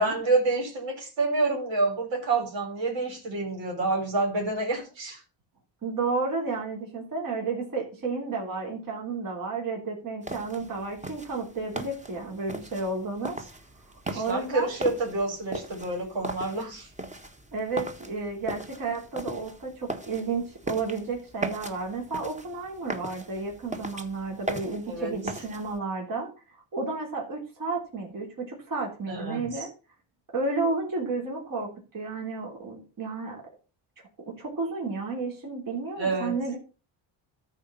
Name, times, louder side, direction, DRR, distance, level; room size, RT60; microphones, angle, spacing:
voice 1, 0.0-5.2 14.1-16.9 24.9-25.2 29.1-29.7 36.0-36.4, right 3 dB, 75° right, 4.1 m, -28 dB
voice 2, 5.8-13.4 14.1-14.8 17.5-26.3 26.7-29.7 30.3-33.4 34.3-36.6, right 3 dB, 50° right, 3.5 m, -32 dB
sound 1, 10.2-25.8, right 2 dB, 15° right, 1.5 m, -39 dB
13.5 x 4.5 x 5.7 m
cardioid pair, 95°, 44 cm